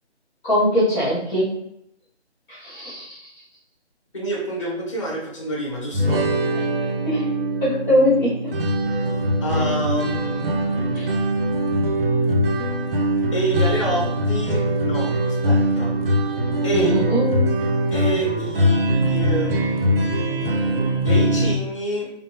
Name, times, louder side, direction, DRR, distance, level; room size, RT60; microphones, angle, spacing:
voice 1, 0.4-1.5 2.5-3.2 7.0-7.2 7.6-8.5 10.9-11.1 16.7-17.5, equal, 5° left, -9 dB, 1.3 m, -21 dB
voice 2, 4.1-6.3 9.4-11.0 13.3-16.0 16.6-17.0 17.9-22.1, right 1 dB, 25° left, -3 dB, 1.0 m, -28 dB
sound 1, 5.9-21.6, right 1 dB, 55° right, 0.7 m, -22 dB
3.4 x 2.6 x 3.0 m, 0.75 s
figure-of-eight pair, 160°, 35 cm